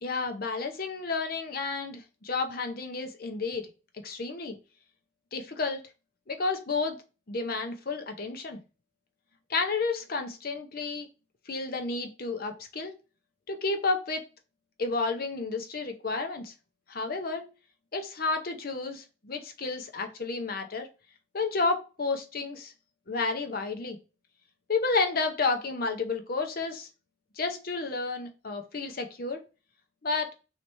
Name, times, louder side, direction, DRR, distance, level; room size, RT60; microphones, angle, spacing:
voice 1, 0.0-3.7 4.0-4.6 5.3-5.8 6.3-7.0 7.3-8.6 9.5-11.1 11.5-12.9 13.5-14.2 14.8-16.5 16.9-17.5 17.9-20.9 21.3-22.7 23.1-24.0 24.7-26.9 27.4-29.4 30.0-30.3, left 3 dB, 45° left, 5 dB, 0.7 m, -31 dB
3.3 x 2.9 x 4.4 m, 0.32 s
head